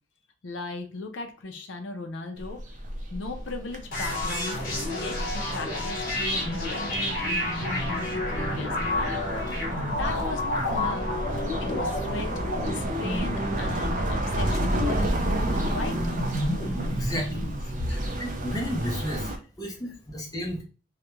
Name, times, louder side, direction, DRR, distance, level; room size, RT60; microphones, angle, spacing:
voice 1, 0.4-2.6 3.1-4.6 4.9-9.2 10.0-11.1 11.6-12.3 12.6-16.0 17.9-18.1, left 3 dB, 70° left, 5 dB, 0.4 m, -37 dB
sound 1, 2.4-19.4, right 1 dB, 40° right, 0.4 m, -31 dB
sound 2, 3.9-17.5, left 1 dB, 50° left, 1.0 m, -30 dB
voice 2, 16.9-17.5 18.2-19.3 19.6-20.6, equal, 20° left, -1 dB, 0.6 m, -32 dB
2.3 x 2.1 x 3.0 m, 0.36 s
head